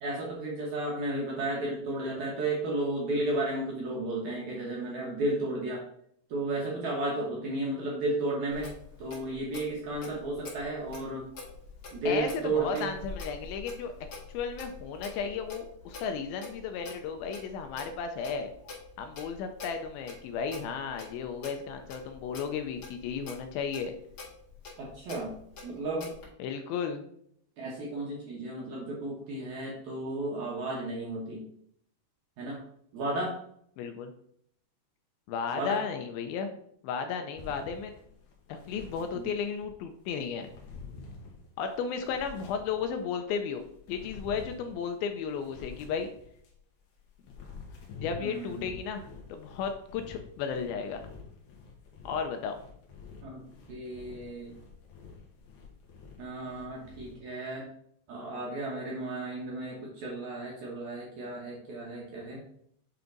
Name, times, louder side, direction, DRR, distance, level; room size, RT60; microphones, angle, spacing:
voice 1, 0.0-5.8 6.3-8.7 9.0-11.2 11.9-12.9 24.8-25.3 25.6-26.1 27.6-31.4 32.4-32.6 32.9-33.4 35.5-35.8 39.1-39.3 48.2-48.7 53.2-53.4 53.7-54.5 56.2-57.7 58.1-62.4, right 2 dB, 70° right, -3 dB, 1.8 m, -33 dB
Clock, 8.5-26.3, left 4 dB, 45° left, 2.1 m, -46 dB
voice 2, 12.1-13.9 14.3-18.5 19.0-24.0 26.4-27.0 33.8-34.1 35.3-37.9 38.5-40.5 41.6-43.6 43.9-46.1 48.0-51.0 52.1-52.5, left 6 dB, 80° left, 6 dB, 2.2 m, -34 dB
sound 1, 37.4-39.7 40.1-43.1 43.5-46.6 47.0-57.1, left 5 dB, 65° left, 2.1 m, -48 dB
8.4 x 3.4 x 3.9 m, 0.69 s
omnidirectional pair, 4.7 m